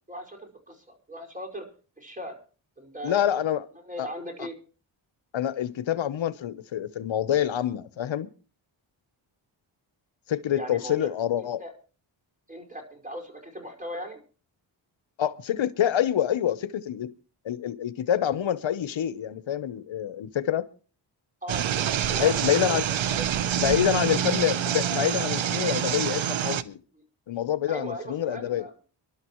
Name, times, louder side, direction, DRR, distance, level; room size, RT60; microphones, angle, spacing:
voice 1, 0.1-1.7 2.0-2.4 2.8-3.3 3.8-4.5 10.5-11.1 11.4-11.7 12.5-14.2 21.4-22.8 23.0-23.3 23.8-24.1 27.7-28.8, equal, 15° right, 5.1 m, -39 dB
voice 2, 3.0-3.6 4.0-4.1 5.3-8.3 10.3-11.6 15.2-17.1 17.4-20.7 22.2-22.9 23.6-26.8 27.3-28.6, left 10 dB, 65° left, 0.9 m, -26 dB
sound 1, 21.5-26.6, right 10 dB, 70° right, 0.9 m, -27 dB
26.5 x 12.0 x 3.1 m
cardioid pair, 75°, 49 cm